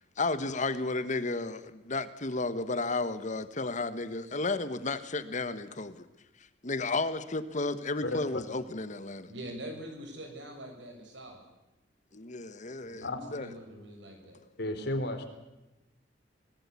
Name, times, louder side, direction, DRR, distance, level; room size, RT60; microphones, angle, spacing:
voice 1, 0.2-6.1 6.6-9.3 12.1-13.0 13.3-13.5, left 3 dB, 40° left, 13 dB, 1.3 m, -33 dB
voice 2, 8.0-8.4 13.0-13.2 14.6-15.2, left 1 dB, 60° left, 6 dB, 4.0 m, -33 dB
voice 3, 9.3-11.4 12.8-14.4, right 1 dB, 70° right, 4 dB, 7.0 m, -44 dB
23.5 x 20.0 x 8.4 m, 0.98 s
head